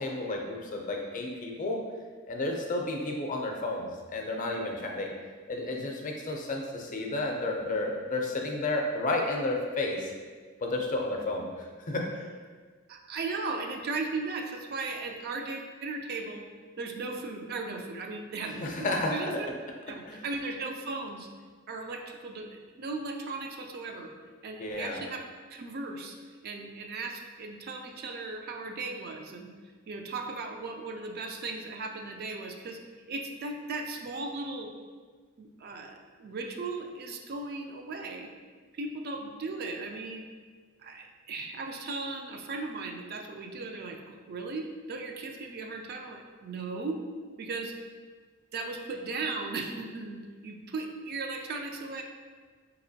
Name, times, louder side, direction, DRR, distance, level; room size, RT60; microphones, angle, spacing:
voice 1, 0.0-1.8 2.3-5.1 5.5-10.1 10.6-12.3 18.6-19.4 20.0-20.2 24.6-25.0, left 2 dB, 40° left, 1 dB, 0.5 m, -32 dB
voice 2, 12.9-16.4 16.8-19.5 19.9-21.3 21.7-24.1 24.4-25.2 25.5-26.2 26.4-29.5 29.9-34.7 35.4-38.3 38.7-40.3 40.8-47.0 47.4-47.7 48.5-52.0, right 3 dB, 50° right, 3 dB, 0.3 m, -37 dB
4.2 x 2.9 x 2.7 m, 1.5 s
head